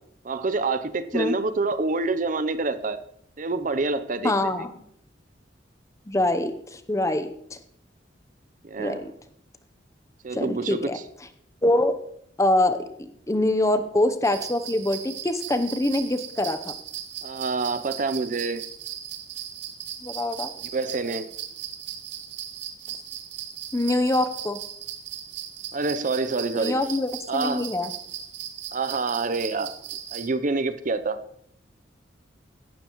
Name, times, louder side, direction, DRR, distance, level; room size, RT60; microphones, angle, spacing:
voice 1, 0.2-3.0 3.4-4.7 8.6-9.0 10.2-10.9 17.2-18.6 20.6-21.3 25.7-26.8 27.3-27.7 28.7-29.7 30.1-31.2, right 3 dB, 45° right, 12 dB, 0.6 m, -27 dB
voice 2, 4.2-4.7 6.1-7.3 8.8-9.1 10.3-11.0 11.6-12.0 12.4-12.9 13.3-16.7 20.0-20.5 23.7-24.6 26.6-27.9, left 1 dB, 15° left, 9 dB, 0.8 m, -24 dB
sound 1, 14.2-30.3, right 10 dB, 70° right, 1.1 m, -38 dB
16.5 x 12.5 x 3.1 m, 0.72 s
head